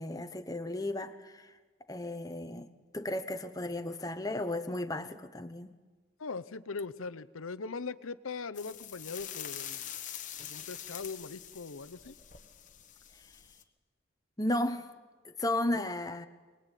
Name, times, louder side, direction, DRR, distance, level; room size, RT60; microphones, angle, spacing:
voice 1, 0.0-1.5 1.9-2.7 2.9-5.7 14.4-14.9 15.2-16.3, left 1 dB, 15° left, 1.1 m, -34 dB
voice 2, 6.2-10.0 10.4-12.2 15.7-15.9, left 4 dB, 85° left, 0.8 m, -40 dB
sound 1, 8.5-13.6, left 10 dB, 35° left, 1.3 m, -44 dB
23.5 x 20.5 x 9.1 m
head